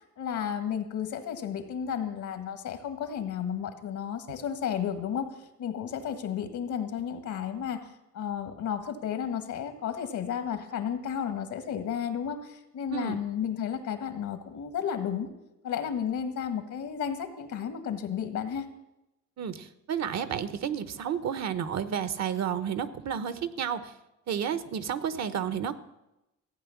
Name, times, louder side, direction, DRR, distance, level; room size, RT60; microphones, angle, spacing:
voice 1, 0.2-5.3 5.6-15.3 15.6-18.7, left 8 dB, 75° left, 8 dB, 1.7 m, -33 dB
voice 2, 19.4-23.9 24.3-25.8, right 8 dB, 60° right, 13 dB, 1.0 m, -31 dB
15.0 x 8.8 x 7.2 m, 0.94 s
cardioid pair, 90°, 30 cm